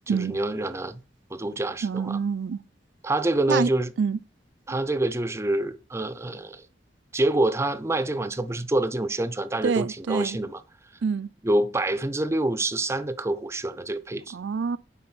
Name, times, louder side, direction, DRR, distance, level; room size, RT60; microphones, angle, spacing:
voice 1, 0.1-1.0 1.3-2.2 3.0-3.9 4.7-6.6 7.1-10.6 11.4-14.4, right 2 dB, 15° right, 0.5 m, -26 dB
voice 2, 1.8-2.6 3.5-3.7 4.0-4.2 9.6-10.4 11.0-11.3 14.3-14.8, right 5 dB, 80° right, 0.4 m, -26 dB
9.7 x 3.9 x 6.1 m
head